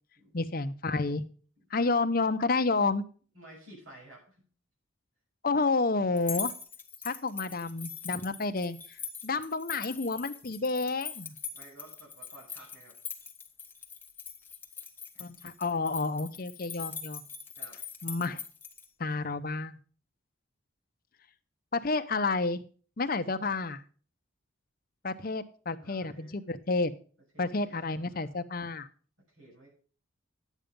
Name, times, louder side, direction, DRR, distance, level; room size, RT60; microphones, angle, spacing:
voice 1, 0.3-1.2 1.7-3.0 5.4-6.5 7.0-8.8 9.2-11.3 15.2-17.2 18.0-18.4 19.0-19.8 21.7-22.6 23.0-23.8 25.0-26.9 27.4-28.9, left 3 dB, 45° left, 9 dB, 0.7 m, -30 dB
voice 2, 3.3-4.5 7.0-7.1 7.4-7.6 11.5-12.9 15.1-15.2 17.6-17.8 25.8-26.3 27.3-28.3 29.3-29.7, right 1 dB, 85° right, -3 dB, 6.8 m, -53 dB
sound 1, 6.2-18.9, left 6 dB, 10° left, 0.9 m, -42 dB
10.5 x 8.2 x 5.3 m, 0.42 s
head